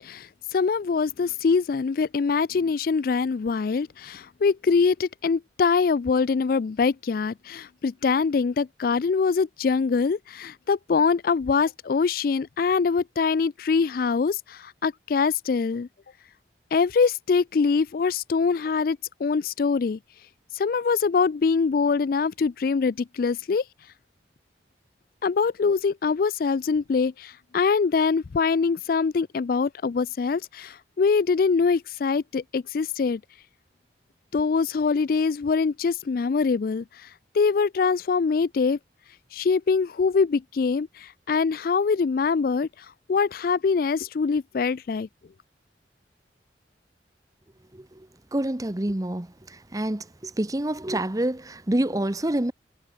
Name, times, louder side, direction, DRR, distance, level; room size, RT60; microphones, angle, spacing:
voice 1, 0.0-15.9 16.7-20.0 20.5-23.6 25.2-33.2 34.3-37.1 37.3-38.8 39.3-42.7 43.1-45.1, left 5 dB, 50° left, 0.4 m, -24 dB
voice 2, 47.7-52.5, right 1 dB, 20° right, 0.8 m, -28 dB
head